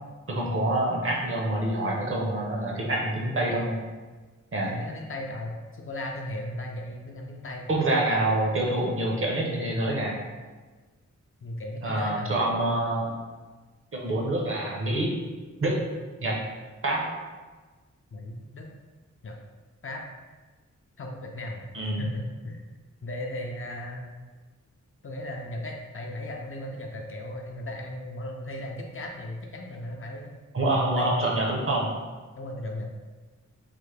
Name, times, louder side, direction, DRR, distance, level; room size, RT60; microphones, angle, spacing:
voice 1, 0.3-3.8 4.5-4.8 7.7-10.2 11.8-13.1 13.9-15.1 15.6-15.8 16.2-16.4 16.8-17.0 21.7-22.0 30.5-31.9, right 1 dB, 45° right, -2 dB, 0.7 m, -26 dB
voice 2, 4.6-7.7 8.1-8.5 11.4-12.3 18.1-18.7 19.2-19.4 19.8-20.0 21.0-21.6 22.0-22.6 23.0-24.1 25.0-30.3 30.7-31.2 32.4-32.9, left 1 dB, 45° left, 1 dB, 0.4 m, -36 dB
3.3 x 2.1 x 3.2 m, 1.3 s
wide cardioid pair, 100°, 30 cm